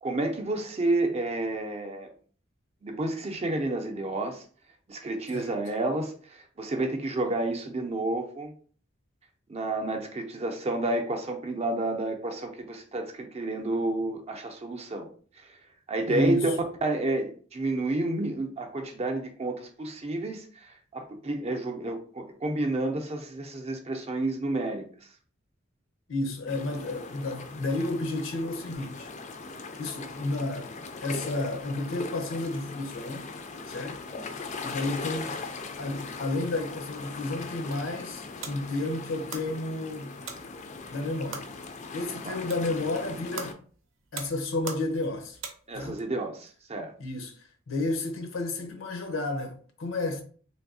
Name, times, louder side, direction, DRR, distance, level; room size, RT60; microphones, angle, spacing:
voice 1, 0.0-2.1 2.8-4.4 4.9-8.5 9.5-15.1 15.4-15.5 15.9-16.4 16.8-24.8 42.2-42.3 45.7-46.9, right 2 dB, 35° right, 0.5 m, -30 dB
voice 2, 16.1-16.6 26.1-29.1 29.8-33.3 33.7-34.0 34.6-35.4 35.8-40.2 40.9-41.5 41.9-43.6 44.1-45.4 45.7-46.0 47.0-50.2, left 2 dB, 90° left, 0.7 m, -31 dB
sound 1, 26.5-43.5, left 3 dB, 40° left, 0.4 m, -40 dB
sound 2, 37.7-46.0, right 5 dB, 80° right, 0.7 m, -44 dB
3.2 x 2.7 x 2.6 m
head